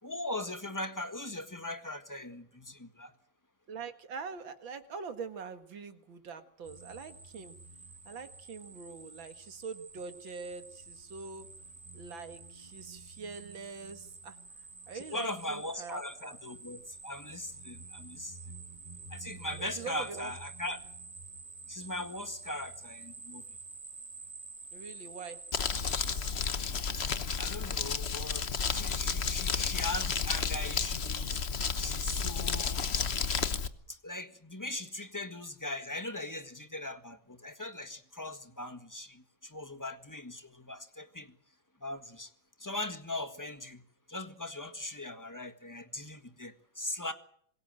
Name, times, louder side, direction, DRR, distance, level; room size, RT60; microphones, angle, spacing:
voice 1, 0.0-3.1 14.9-18.4 19.1-20.8 21.7-23.4 26.9-27.1 27.4-31.4 31.8-32.8 33.9-41.4 41.8-42.3 42.6-47.1, left 1 dB, 10° left, 9 dB, 1.5 m, -40 dB
voice 2, 3.7-7.6 8.1-11.5 11.9-14.4 14.9-16.4 19.6-20.3 24.7-25.4, right 5 dB, 85° right, 9 dB, 2.6 m, -43 dB
sound 1, 6.6-26.3, right 4 dB, 25° right, 1.6 m, -49 dB
Crumpling crinkling, 25.5-33.7, left 5 dB, 40° left, 1.2 m, -32 dB
26.0 x 21.5 x 7.7 m, 0.64 s
omnidirectional pair, 2.1 m